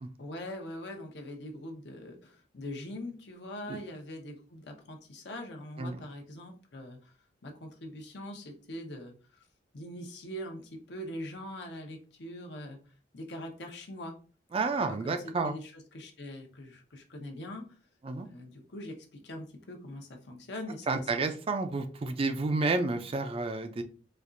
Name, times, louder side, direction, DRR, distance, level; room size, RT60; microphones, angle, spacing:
voice 1, 0.2-7.1 7.4-9.1 9.7-12.8 13.1-14.1 14.8-15.2 15.4-17.6 18.2-19.0 19.2-21.0, left 1 dB, 70° left, 2 dB, 0.8 m, -42 dB
voice 2, 14.5-15.5 18.0-18.3 20.9-23.8, right 3 dB, 35° right, 8 dB, 0.4 m, -30 dB
4.3 x 2.4 x 2.5 m, 0.38 s
head